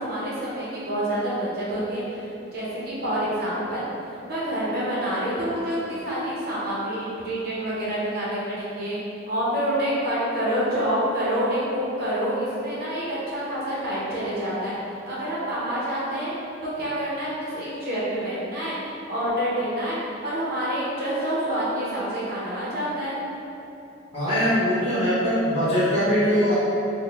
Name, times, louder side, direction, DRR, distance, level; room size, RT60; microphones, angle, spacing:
voice 1, 0.0-3.8 4.3-9.0 9.3-14.7 15.1-16.3 16.6-23.2, equal, 50° right, -8 dB, 0.7 m, -27 dB
voice 2, 24.1-26.5, equal, 30° left, -12 dB, 1.3 m, -21 dB
3.8 x 2.1 x 3.4 m, 2.8 s
head